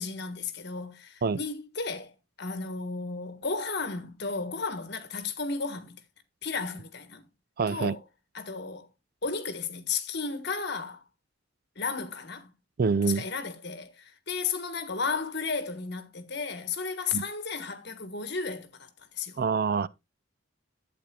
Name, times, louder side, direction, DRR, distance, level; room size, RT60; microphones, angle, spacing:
voice 1, 0.0-6.0 6.4-7.2 7.7-8.0 8.3-8.9 9.2-11.0 11.7-12.5 13.1-19.4, left 4 dB, 50° left, 1.5 m, -34 dB
voice 2, 7.6-7.9 12.8-13.2 17.1-17.2 19.4-19.9, right 5 dB, 45° right, 0.4 m, -25 dB
11.5 x 8.7 x 2.3 m
head